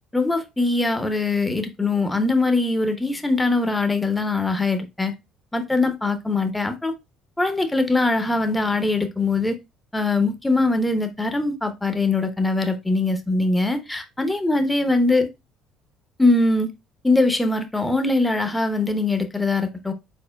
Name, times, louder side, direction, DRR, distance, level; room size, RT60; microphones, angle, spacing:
voice 1, 0.1-5.1 5.5-6.9 7.4-9.6 9.9-15.3 16.2-16.7 17.0-19.9, left 2 dB, 10° left, 0.8 m, -22 dB
4.3 x 4.2 x 2.2 m
hypercardioid pair, 65°, 0 cm